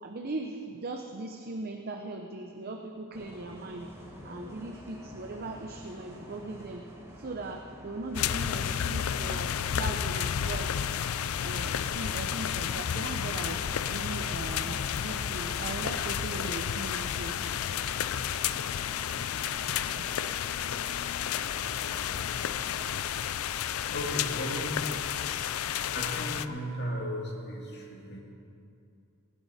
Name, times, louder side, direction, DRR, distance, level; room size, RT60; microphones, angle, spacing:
voice 1, 0.0-3.9 4.2-6.9 7.2-10.7 11.4-13.6 13.9-17.4 19.7-20.1, right 2 dB, 45° right, 3 dB, 0.7 m, -39 dB
Bus, 3.1-22.9, left 1 dB, 10° right, 1.7 m, -49 dB
sound 1, 8.1-26.5, left 9 dB, 75° left, 0.4 m, -31 dB
voice 2, 23.9-24.9 25.9-28.2, equal, 50° left, 0 dB, 2.1 m, -35 dB
19.0 x 11.0 x 4.2 m, 2.6 s
head